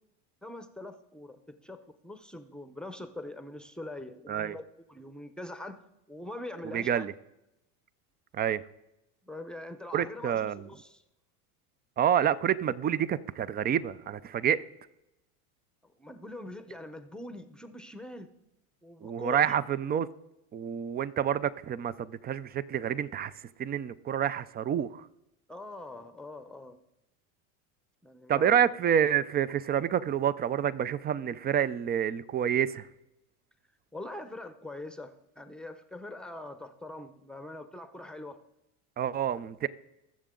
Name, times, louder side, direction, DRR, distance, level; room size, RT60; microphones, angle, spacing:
voice 1, 0.4-5.8 6.1-7.2 9.2-11.0 15.8-18.3 18.8-19.5 25.5-26.8 28.0-28.6 33.9-38.4, left 1 dB, ahead, 0.8 m, -43 dB
voice 2, 6.7-7.1 8.3-8.6 9.9-10.7 12.0-14.6 19.0-20.1 20.5-23.3 23.6-25.1 28.3-32.9 39.0-39.7, right 9 dB, 25° right, 0.5 m, -28 dB
21.0 x 7.4 x 3.8 m
supercardioid pair, 110°, 42 cm